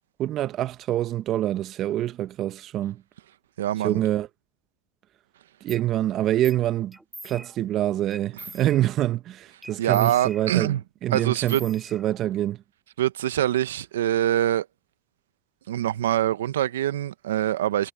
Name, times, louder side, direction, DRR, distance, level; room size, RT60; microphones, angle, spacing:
voice 1, 0.2-3.0 3.8-4.3 5.6-7.0 7.2-10.8 11.0-12.6, right 13 dB, 50° right, 1.1 m, -26 dB
voice 2, 3.6-4.0 8.4-8.5 9.8-10.8 11.1-11.6 13.0-14.7 15.7-17.9, right 12 dB, 85° right, 0.9 m, -24 dB
sound 1, 5.7-5.9 6.4-6.6 6.9-7.7 8.1-9.1 9.6-10.8 11.1-12.4, right 1 dB, 5° right, 3.3 m, -44 dB
hypercardioid pair, 85°, 0 cm